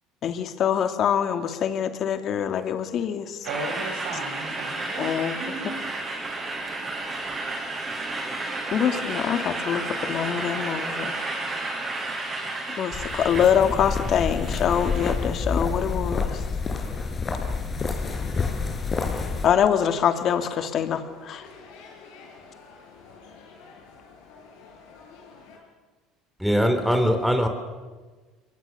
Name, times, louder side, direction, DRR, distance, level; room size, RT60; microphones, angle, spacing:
voice 1, 0.2-3.5 5.0-5.3 8.7-11.2 12.8-16.4 19.4-21.5, left 8 dB, 50° left, 2.4 m, -24 dB
sound 1, 3.4-15.1, right 2 dB, 30° right, 7.9 m, -32 dB
voice 2, 3.5-5.8, right 3 dB, 70° right, 7.3 m, -35 dB
sound 2, 12.9-19.5, left 4 dB, 35° left, 4.7 m, -28 dB
sound 3, 19.8-25.6, left 4 dB, 75° left, 6.9 m, -49 dB
voice 3, 26.4-27.5, equal, ahead, 3.6 m, -21 dB
29.0 x 22.5 x 6.9 m
hypercardioid pair, 75°, 0 cm